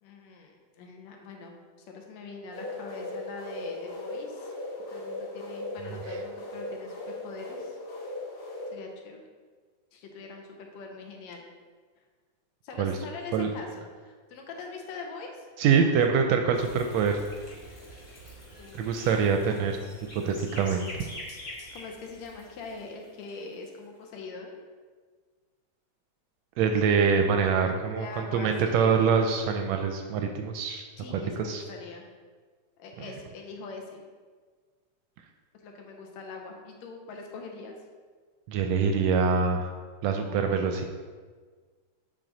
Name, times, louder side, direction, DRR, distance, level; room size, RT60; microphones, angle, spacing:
voice 1, 0.0-1.6 1.9-4.5 4.9-7.0 7.2-7.8 8.7-9.2 9.9-11.4 12.6-15.5 18.6-19.2 21.7-24.6 27.9-29.1 31.0-32.1 32.8-34.0 35.6-37.8, left 4 dB, 75° left, 2 dB, 2.0 m, -43 dB
sound 1, 2.5-8.7, left 2 dB, 50° left, 1.8 m, -38 dB
voice 2, 15.6-17.2 18.8-19.8 20.1-21.0 26.6-30.8 31.1-31.2 31.4-31.6 38.5-39.7 40.0-40.9, right 6 dB, 80° right, 4 dB, 1.6 m, -25 dB
sound 2, 16.5-23.6, left 1 dB, 25° left, 1.1 m, -45 dB
7.5 x 4.7 x 3.9 m, 1.5 s
omnidirectional pair, 3.3 m